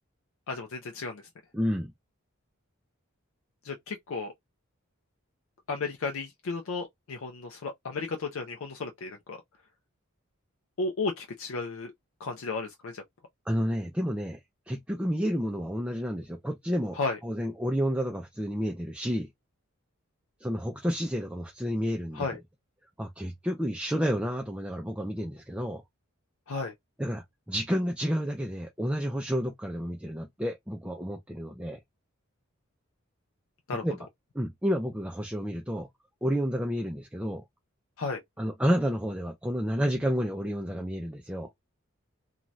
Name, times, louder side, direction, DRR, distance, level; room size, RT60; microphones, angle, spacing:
voice 1, 0.5-1.2 3.6-4.3 5.7-9.4 10.8-11.9 12.2-13.0 16.9-17.2 22.1-22.4 26.5-26.7 33.7-33.9 38.0-38.2, left 3 dB, 70° left, 0.4 m, -33 dB
voice 2, 1.5-1.9 13.5-14.4 14.7-17.0 17.2-19.3 20.4-22.3 23.0-25.8 27.0-31.8 33.8-34.0 34.3-35.9 36.2-37.4 38.4-41.5, equal, 5° right, 0.4 m, -30 dB
2.7 x 2.3 x 3.0 m
head